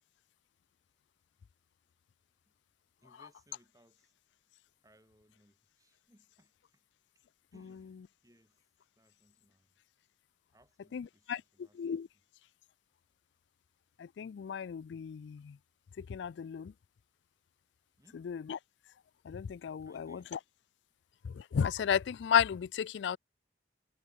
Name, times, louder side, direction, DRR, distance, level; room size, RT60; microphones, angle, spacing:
voice 1, 3.0-4.1 4.8-6.8 7.1-7.2 7.5-9.8 10.5-12.2 18.0-18.3 19.8-20.3, right 1 dB, 20° right, 7.9 m, -67 dB
voice 2, 14.2-15.5 16.0-16.7 18.3-18.4 19.3-20.4 21.2-23.2, left 7 dB, 85° left, 0.3 m, -33 dB
head